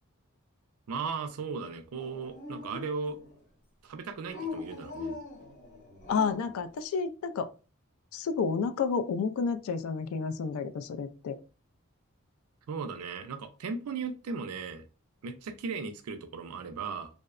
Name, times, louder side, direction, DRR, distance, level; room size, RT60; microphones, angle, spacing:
voice 1, 0.9-3.2 3.8-5.2 12.7-14.8 15.2-17.1, right 5 dB, 85° right, 0.4 m, -36 dB
Dog, 1.9-3.4 4.2-6.6, left 4 dB, 35° left, 0.8 m, -41 dB
voice 2, 6.1-7.5 8.1-11.4, left 5 dB, 70° left, 0.3 m, -30 dB
2.7 x 2.0 x 2.4 m
head